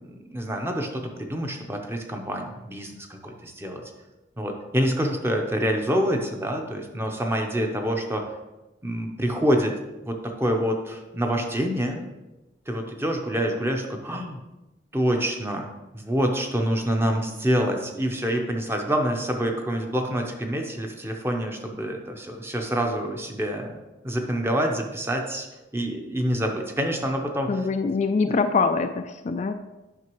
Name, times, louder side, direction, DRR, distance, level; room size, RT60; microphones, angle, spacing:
voice 1, 0.1-3.8 4.4-8.3 8.8-9.7 10.0-12.0 12.7-14.4 14.9-23.7 24.0-25.5 25.7-27.5 28.2-28.4, equal, 15° right, 2 dB, 0.8 m, -26 dB
voice 2, 27.5-29.5, left 4 dB, 35° left, 7 dB, 0.3 m, -24 dB
9.2 x 5.8 x 3.1 m, 1.0 s
head